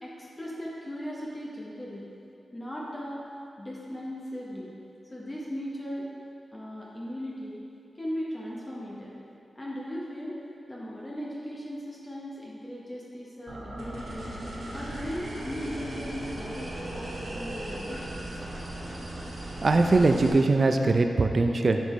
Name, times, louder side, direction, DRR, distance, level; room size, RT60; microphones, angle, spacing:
voice 1, 0.0-2.1 2.5-3.2 3.6-4.7 5.1-6.2 6.5-7.6 8.0-9.1 9.5-10.4 10.7-14.4 14.7-18.3, equal, 20° left, -5 dB, 0.8 m, -38 dB
sound 1, 13.5-20.3, right 1 dB, 75° right, 1.3 m, -37 dB
voice 2, 19.6-21.8, right 3 dB, 45° right, 5 dB, 0.4 m, -21 dB
7.4 x 5.3 x 3.1 m, 2.6 s
wide cardioid pair, 140°, 0 cm